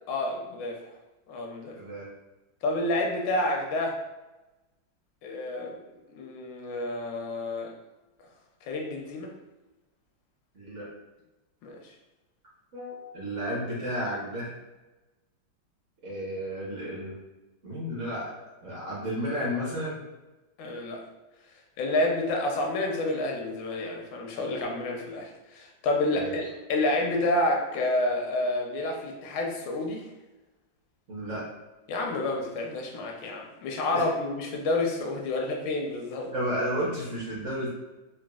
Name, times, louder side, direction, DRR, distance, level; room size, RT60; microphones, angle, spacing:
voice 1, 0.1-0.8 1.3-1.7 2.6-4.0 5.2-5.8 6.1-7.7 8.7-9.3 11.6-11.8 20.6-21.0 21.8-30.0 31.9-36.3, left 2 dB, 80° left, 1 dB, 1.3 m, -29 dB
voice 2, 1.8-2.1 5.5-5.7 10.5-10.9 12.7-14.5 16.0-17.2 17.6-18.3 18.6-20.0 26.1-26.4 31.1-31.4 33.9-34.0 36.3-37.7, equal, 55° right, -7 dB, 0.9 m, -32 dB
4.0 x 2.1 x 2.3 m, 1.1 s
omnidirectional pair, 2.0 m